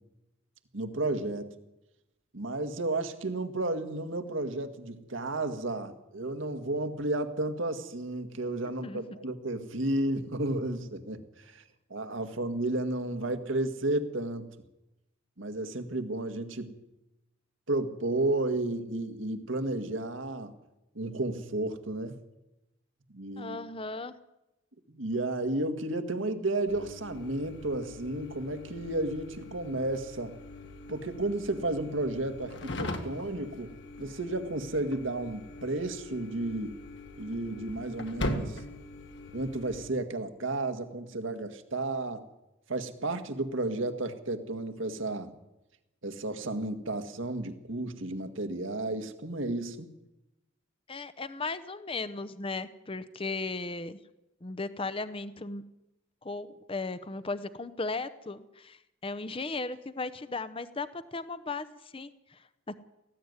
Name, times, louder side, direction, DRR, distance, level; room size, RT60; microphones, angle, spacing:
voice 1, 0.7-1.5 2.3-11.6 11.9-14.5 15.4-16.7 17.7-20.5 21.0-22.2 23.1-23.6 24.9-30.4 30.9-36.8 37.2-38.6 39.3-42.2 42.7-45.3 46.0-49.9, right 2 dB, 80° right, 7 dB, 1.9 m, -32 dB
voice 2, 8.8-9.2 23.4-24.2 50.9-54.0 54.4-55.6 56.2-62.8, left 3 dB, 30° left, 13 dB, 0.7 m, -36 dB
sound 1, 26.7-39.9, left 1 dB, 65° left, 2.0 m, -41 dB
19.0 x 15.0 x 9.6 m, 0.95 s
head